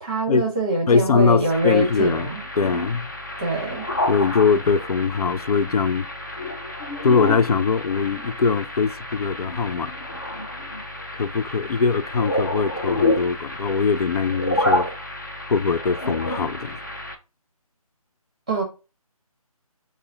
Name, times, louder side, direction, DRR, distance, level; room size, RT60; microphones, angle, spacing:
voice 1, 0.0-2.4 3.4-3.9 18.5-18.6, right 2 dB, 10° right, 0.8 m, -24 dB
voice 2, 0.9-2.3 2.6-3.1 4.1-6.1 7.0-9.9 11.1-14.9 15.5-16.8, left 5 dB, 80° left, 0.4 m, -21 dB
sound 1, 1.5-17.1, left 1 dB, 30° left, 0.5 m, -29 dB
5.9 x 2.2 x 3.8 m
figure-of-eight pair, 175°, 19 cm